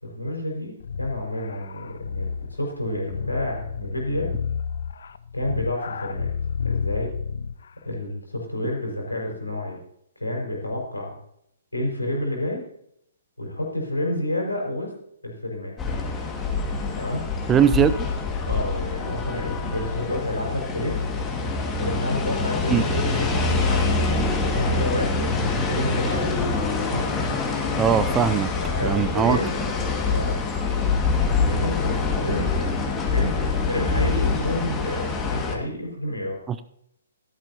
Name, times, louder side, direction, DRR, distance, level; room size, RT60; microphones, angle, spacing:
voice 1, 0.0-4.3 5.3-6.3 6.6-7.1 7.8-9.8 10.1-11.2 11.7-12.6 13.4-14.9 15.2-15.7 16.9-17.2 18.5-21.1 21.8-24.0 24.5-26.4 26.7-27.1 28.6-29.6 30.0-30.5 31.4-36.4, left 1 dB, 85° left, -1 dB, 5.1 m, -29 dB
sound 1, 0.8-7.7, left 6 dB, 60° left, 0.6 m, -31 dB
sound 2, 15.8-35.6, left 4 dB, 15° left, 2.0 m, -25 dB
voice 2, 17.5-18.1 22.7-22.8 27.8-28.5 28.8-29.4 36.5-36.6, right 8 dB, 15° right, 13 dB, 0.5 m, -20 dB
15.5 x 13.0 x 2.9 m, 0.74 s
figure-of-eight pair, 125°, 0 cm